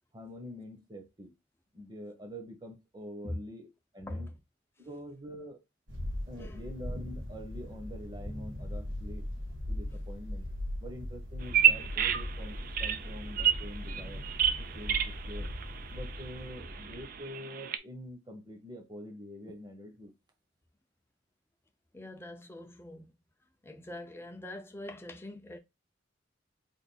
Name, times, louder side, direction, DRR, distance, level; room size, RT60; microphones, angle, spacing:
voice 1, 0.1-1.3 1.7-3.7 3.9-4.3 4.8-5.6 6.3-9.2 9.7-10.5 10.8-14.2 14.6-15.5 15.9-20.1, equal, 25° right, 0.9 m, -45 dB
voice 2, 4.1-4.4 6.3-6.7 21.9-23.2 23.6-25.6, left 1 dB, 15° left, 0.5 m, -42 dB
sound 1, 5.9-17.2, left 1 dB, 80° right, 1.6 m, -39 dB
Bird vocalization bird call bird song, 11.4-17.8, right 9 dB, 50° right, 0.4 m, -31 dB
3.4 x 2.5 x 4.1 m
head